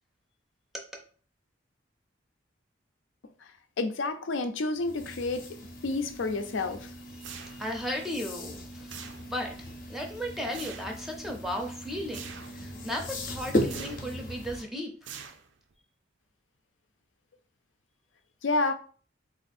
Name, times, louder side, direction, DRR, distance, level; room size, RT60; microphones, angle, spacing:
voice 1, 3.8-6.9 18.4-18.7, left 3 dB, 85° left, 0.5 m, -30 dB
sound 1, 4.8-14.6, left 1 dB, 45° left, 0.6 m, -37 dB
voice 2, 7.2-15.2, equal, ahead, 0.5 m, -36 dB
sound 2, 7.2-7.9 8.9-9.6 10.5-11.0 12.1-12.6 13.6-14.2 15.0-15.7, right 7 dB, 70° right, 0.5 m, -44 dB
3.5 x 2.5 x 4.1 m
head